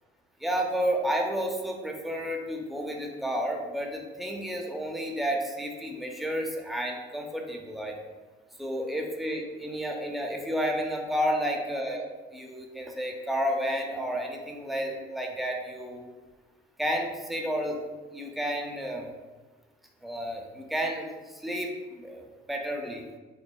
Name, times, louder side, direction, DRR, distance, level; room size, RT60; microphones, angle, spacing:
voice 1, 0.4-7.9 8.6-12.0 12.3-16.0 16.8-17.8 18.1-19.1 20.0-23.1, equal, ahead, 1 dB, 0.5 m, -31 dB
5.8 x 2.0 x 2.2 m, 1.3 s
cardioid pair, 90°, 20 cm